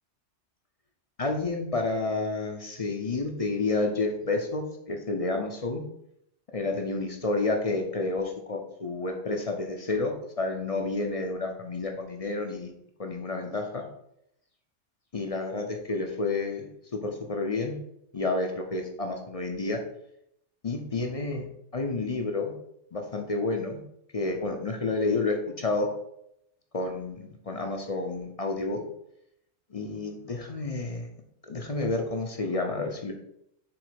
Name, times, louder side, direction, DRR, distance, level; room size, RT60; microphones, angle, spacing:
voice 1, 1.2-5.9 6.5-12.7 13.0-13.8 15.1-17.8 18.1-19.8 20.6-21.4 21.7-22.5 22.9-23.8 24.1-25.9 26.7-28.8 29.7-31.1 31.5-33.1, left 3 dB, 35° left, 3 dB, 0.6 m, -30 dB
7.0 x 3.2 x 5.1 m, 0.77 s
omnidirectional pair, 1.2 m